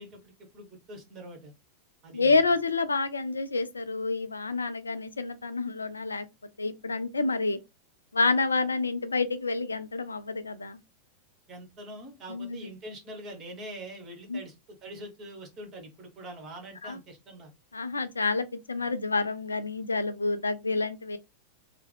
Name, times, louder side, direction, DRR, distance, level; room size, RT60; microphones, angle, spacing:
voice 1, 0.0-1.5 2.0-2.4 11.5-14.6 14.8-17.5, right 1 dB, 30° right, 1.2 m, -44 dB
voice 2, 2.1-6.3 6.6-7.6 8.1-10.8 12.3-12.7 14.3-14.4 16.8-17.0 17.7-21.2, left 3 dB, 75° left, 0.3 m, -28 dB
3.2 x 2.1 x 3.3 m
figure-of-eight pair, 90°, 0 cm